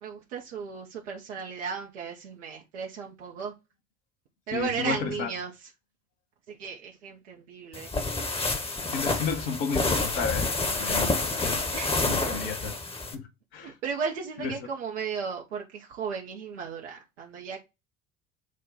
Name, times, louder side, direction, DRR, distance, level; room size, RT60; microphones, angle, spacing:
voice 1, 0.0-3.5 4.5-5.7 6.5-7.9 11.7-12.3 13.6-17.6, right 6 dB, 80° right, 0.8 m, -35 dB
voice 2, 4.5-5.3 8.9-11.6 12.0-12.7 13.1-13.3 13.5-13.7 14.4-14.5, left 6 dB, 70° left, 1.0 m, -32 dB
sound 1, 7.7-13.1, left 3 dB, 15° left, 0.9 m, -28 dB
6.3 x 2.2 x 3.8 m
figure-of-eight pair, 55°, 36 cm